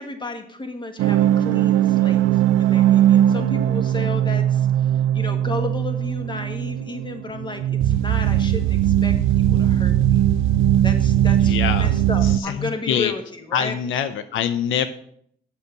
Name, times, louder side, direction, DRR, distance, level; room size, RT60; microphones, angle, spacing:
voice 1, 0.0-10.2 10.8-13.7, left 2 dB, 25° left, 6 dB, 1.6 m, -33 dB
sound 1, 1.0-12.4, right 11 dB, 85° right, 0.4 m, -19 dB
voice 2, 11.4-11.9 12.2-13.1 13.5-14.9, left 9 dB, 80° left, 11 dB, 0.6 m, -25 dB
8.2 x 6.5 x 6.6 m, 0.65 s
cardioid pair, 90°, 20 cm